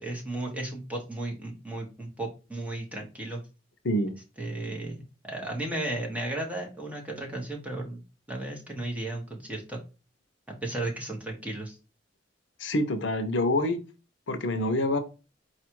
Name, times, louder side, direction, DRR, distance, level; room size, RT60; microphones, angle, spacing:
voice 1, 0.0-3.4 4.4-5.0 5.3-8.0 8.3-9.8 10.6-11.8, right 2 dB, 10° right, 0 dB, 1.2 m, -34 dB
voice 2, 3.8-4.1 12.6-13.8 14.3-15.0, left 1 dB, 75° left, 8 dB, 0.6 m, -26 dB
4.3 x 2.4 x 4.5 m, 0.30 s
head